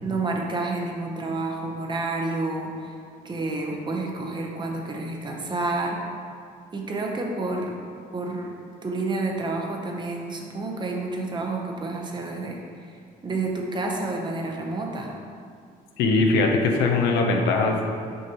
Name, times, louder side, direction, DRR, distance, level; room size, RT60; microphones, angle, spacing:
voice 1, 0.0-2.9 3.2-6.0 6.7-7.8 8.1-8.6 8.8-13.0 13.2-15.2, right 2 dB, 25° right, 0 dB, 0.8 m, -29 dB
voice 2, 16.0-17.9, left 3 dB, 85° left, 2 dB, 0.7 m, -21 dB
6.3 x 5.3 x 3.0 m, 2.2 s
cardioid pair, 110°, 17 cm